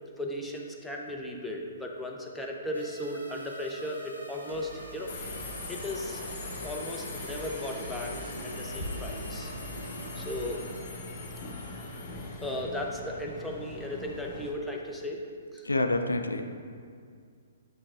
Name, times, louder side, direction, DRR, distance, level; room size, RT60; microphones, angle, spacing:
voice 1, 0.2-5.1 5.7-6.2 6.6-9.5 10.2-10.6 12.4-15.3 15.5-15.7, left 1 dB, 5° left, -1 dB, 0.6 m, -36 dB
sound 1, 2.7-10.6, right 1 dB, 75° right, 0.9 m, -43 dB
Subway metro underground, 5.1-14.5, left 2 dB, 30° left, 1.0 m, -40 dB
voice 2, 15.6-16.4, left 2 dB, 75° left, 6 dB, 0.4 m, -27 dB
7.2 x 5.9 x 2.5 m, 2.2 s
figure-of-eight pair, 120°, 0 cm